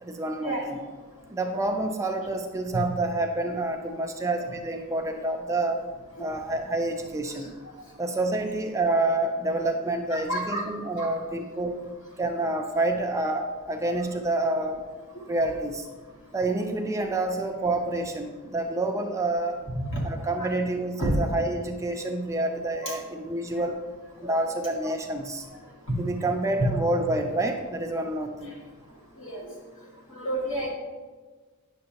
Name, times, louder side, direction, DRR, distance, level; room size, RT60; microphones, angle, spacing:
voice 1, 0.0-0.8 1.3-5.8 6.2-7.5 8.0-11.8 12.2-14.8 15.3-15.9 16.3-19.6 20.0-23.8 24.2-25.5 26.0-28.6, right 2 dB, 15° right, 3 dB, 0.4 m, -28 dB
voice 2, 10.1-10.7 11.0-11.1 19.7-20.0 20.4-20.5 21.0-21.1 22.8-23.0 23.5-23.6 24.2-24.4 24.8-24.9 25.9-26.0 26.6-26.7 29.2-29.5 30.1-30.7, right 1 dB, 60° left, -3 dB, 2.1 m, -30 dB
9.4 x 6.4 x 2.9 m, 1.4 s
head